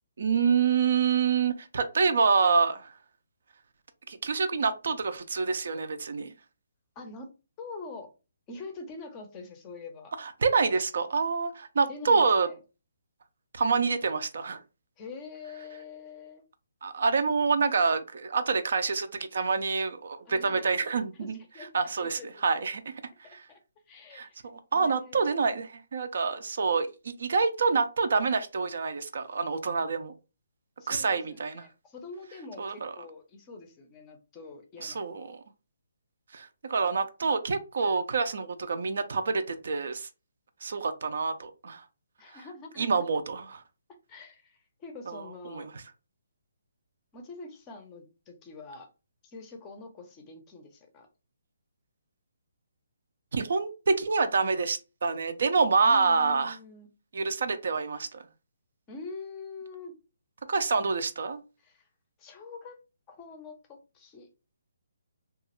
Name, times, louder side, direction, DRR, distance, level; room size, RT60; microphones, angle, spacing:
voice 1, 0.2-2.9 4.1-6.3 10.2-12.5 13.5-14.6 16.8-21.4 21.7-22.8 23.3-23.4 24.1-30.1 30.9-31.7 32.6-32.9 34.8-35.4 36.3-40.1 40.6-41.8 42.8-43.6 45.1-45.8 53.3-56.6 57.1-58.2 60.5-61.4, right 5 dB, 60° right, 0.4 m, -27 dB
voice 2, 7.0-7.3 7.6-8.1 8.5-10.1 11.9-12.6 15.0-16.4 20.2-21.7 22.0-22.3 23.2-23.6 23.9-25.3 30.8-35.3 42.2-43.1 44.1-45.7 47.1-48.9 49.2-51.1 55.8-56.9 58.9-59.9 61.6-61.9 62.2-62.8 63.1-64.3, left 3 dB, 15° left, 0.5 m, -45 dB
3.0 x 2.3 x 2.9 m
hypercardioid pair, 165°, 0 cm